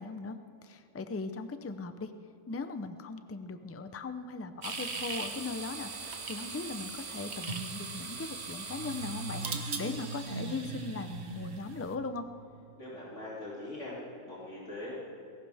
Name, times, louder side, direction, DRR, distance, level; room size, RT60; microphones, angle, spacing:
voice 1, 0.0-2.1 2.5-12.3, left 3 dB, 20° left, 9 dB, 0.4 m, -39 dB
sound 1, 4.6-11.9, right 4 dB, 55° right, 1.5 m, -39 dB
sound 2, 8.6-12.7, right 4 dB, 80° right, 1.2 m, -44 dB
voice 2, 12.8-14.9, left 1 dB, 65° left, -7 dB, 3.4 m, -42 dB
20.5 x 17.5 x 3.5 m, 2.8 s
omnidirectional pair, 1.4 m